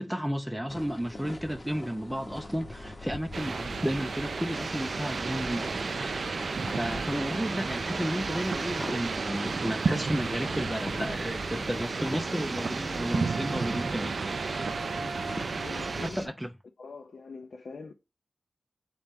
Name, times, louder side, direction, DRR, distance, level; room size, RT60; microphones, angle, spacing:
voice 1, 0.0-6.4 6.8-14.6 16.0-16.5, equal, 5° right, 0.4 m, -33 dB
sound 1, 0.7-16.2, left 1 dB, 30° left, 0.9 m, -43 dB
sound 2, 3.3-16.1, right 4 dB, 65° right, 0.3 m, -33 dB
sound 3, 4.5-16.3, right 1 dB, 25° right, 0.9 m, -41 dB
voice 2, 15.4-16.3 16.8-17.9, left 4 dB, 70° left, 0.5 m, -44 dB
4.2 x 3.0 x 3.6 m
wide cardioid pair, 130°, 0 cm